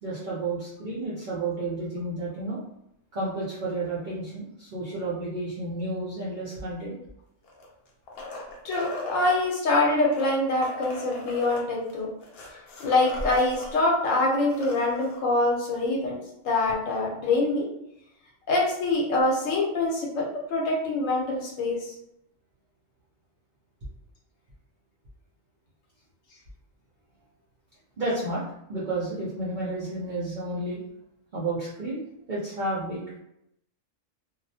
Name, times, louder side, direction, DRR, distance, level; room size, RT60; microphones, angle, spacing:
voice 1, 0.0-2.6 3.1-7.0 28.0-28.4 28.7-30.8 31.3-33.0, right 2 dB, 55° right, -8 dB, 0.6 m, -31 dB
sound 1, 7.4-9.4 10.0-13.7 14.0-14.1 14.4-15.2 16.7-16.8, left 1 dB, 60° left, 0.7 m, -38 dB
voice 2, 8.6-12.1 12.5-16.2 16.4-17.7 18.5-21.9, left 2 dB, 80° left, -2 dB, 1.0 m, -25 dB
2.3 x 2.1 x 2.6 m, 0.80 s
omnidirectional pair, 1.3 m